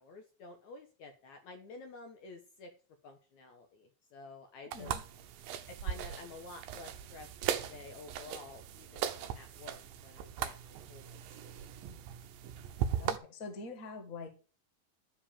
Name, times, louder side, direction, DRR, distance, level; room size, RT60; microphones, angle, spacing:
voice 1, 0.0-2.7 3.0-4.9 5.7-11.5, left 3 dB, 65° left, 5 dB, 2.1 m, -51 dB
sound 1, 4.7-13.2, right 9 dB, 80° right, 2.5 m, -39 dB
voice 2, 13.0-14.3, left 3 dB, 30° left, 5 dB, 1.6 m, -45 dB
12.0 x 4.9 x 7.2 m, 0.36 s
omnidirectional pair, 4.1 m